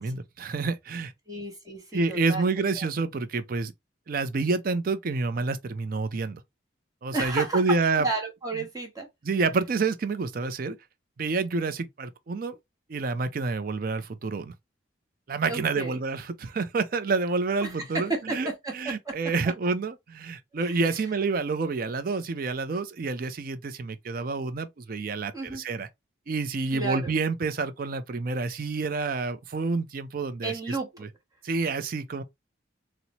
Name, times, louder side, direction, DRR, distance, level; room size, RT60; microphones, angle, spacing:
voice 1, 0.0-1.1 1.9-3.7 4.1-6.4 7.0-8.1 9.2-10.8 11.2-12.5 12.9-14.5 15.3-18.5 18.7-25.9 26.3-31.1 31.4-32.2, right 4 dB, 45° right, 0.4 m, -28 dB
voice 2, 1.3-2.5 2.8-2.9 7.1-9.1 15.5-16.0 17.6-18.3 18.6-18.7 19.0-19.1 19.4-19.5 20.6-20.8 25.3-25.6 26.7-27.1 30.4-31.0, right 3 dB, 20° right, 0.9 m, -32 dB
4.0 x 2.0 x 2.8 m
head